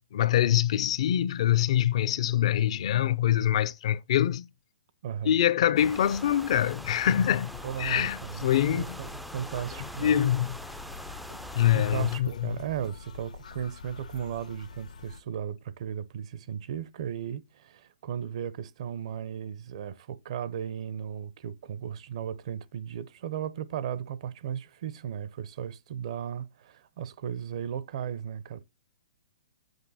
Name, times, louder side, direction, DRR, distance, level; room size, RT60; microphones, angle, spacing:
voice 1, 0.1-4.5 5.2-7.5 7.8-9.0 9.8-10.6 11.5-12.6, left 11 dB, 55° left, 0.5 m, -25 dB
voice 2, 5.0-5.4 7.6-10.3 11.7-28.6, right 9 dB, 55° right, 0.7 m, -36 dB
sound 1, 5.8-12.2, right 1 dB, ahead, 0.4 m, -43 dB
sound 2, 7.5-15.2, left 6 dB, 90° left, 1.4 m, -46 dB
8.0 x 5.7 x 4.1 m
hypercardioid pair, 145°, 4 cm